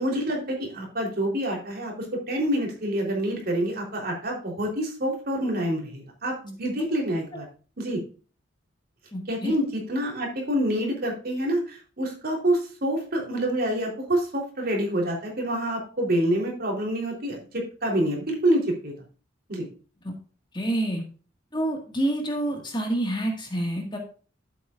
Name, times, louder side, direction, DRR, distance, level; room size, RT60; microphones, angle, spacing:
voice 1, 0.0-7.4 7.8-8.0 9.3-18.9 19.5-19.7, right 1 dB, 50° right, 1 dB, 3.5 m, -27 dB
voice 2, 9.1-9.5 20.5-21.0 21.5-24.0, right 1 dB, 25° left, 2 dB, 1.8 m, -27 dB
11.5 x 8.4 x 2.5 m, 0.38 s
head